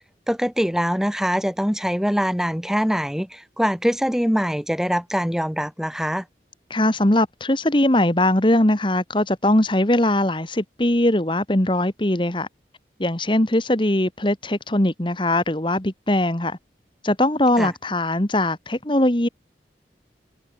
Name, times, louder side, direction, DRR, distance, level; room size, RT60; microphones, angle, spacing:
voice 1, 0.3-6.2 17.6-17.7, equal, 5° right, 2.4 m, -23 dB
voice 2, 6.7-12.5 13.0-16.6 17.0-19.3, left 1 dB, 30° left, 1.7 m, -20 dB
head